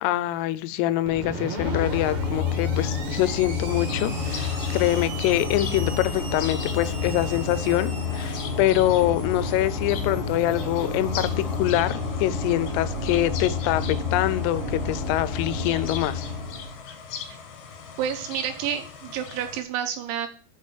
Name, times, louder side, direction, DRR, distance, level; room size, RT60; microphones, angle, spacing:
voice 1, 0.0-16.2, left 14 dB, 90° left, 16 dB, 3.3 m, -25 dB
Screech, 1.0-11.5, right 2 dB, 50° right, 2.4 m, -40 dB
sound 1, 1.6-16.7, left 4 dB, 30° left, 1.1 m, -29 dB
sound 2, 3.9-19.6, left 6 dB, 65° left, 2.8 m, -40 dB
voice 2, 18.0-20.3, right 9 dB, 75° right, 6 dB, 3.1 m, -29 dB
6.8 x 6.5 x 7.1 m, 0.38 s
omnidirectional pair, 5.8 m